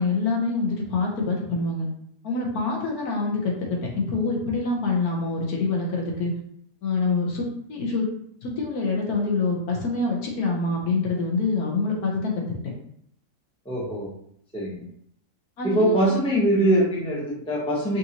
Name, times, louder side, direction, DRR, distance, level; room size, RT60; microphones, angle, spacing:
voice 1, 0.0-1.8 2.2-6.3 6.8-8.1 8.4-12.4 15.6-16.0 16.2-16.4, left 3 dB, 65° left, -1 dB, 1.3 m, -26 dB
voice 2, 13.6-14.1 14.5-14.9 15.6-18.0, right 1 dB, 5° left, -5 dB, 0.8 m, -22 dB
5.3 x 2.6 x 2.9 m, 0.69 s
omnidirectional pair, 1.8 m